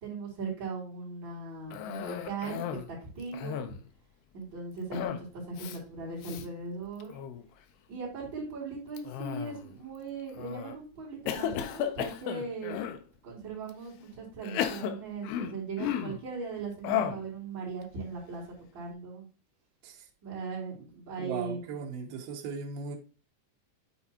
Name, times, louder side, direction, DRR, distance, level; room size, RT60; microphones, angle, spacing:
voice 1, 0.0-3.8 4.3-7.2 7.9-18.4 18.7-19.3 20.2-21.6, right 4 dB, 30° right, 3.2 m, -39 dB
Cough, 1.7-2.9 3.2-3.9 4.9-5.3 5.6-5.8 6.2-6.4 7.0-7.4 9.0-9.8 10.4-10.7 11.3-13.0 13.7-13.8 14.4-16.2 16.8-17.3, left 10 dB, 90° left, 2.3 m, -34 dB
voice 2, 21.2-23.0, right 5 dB, 75° right, 2.4 m, -37 dB
8.4 x 4.3 x 2.8 m
omnidirectional pair, 5.3 m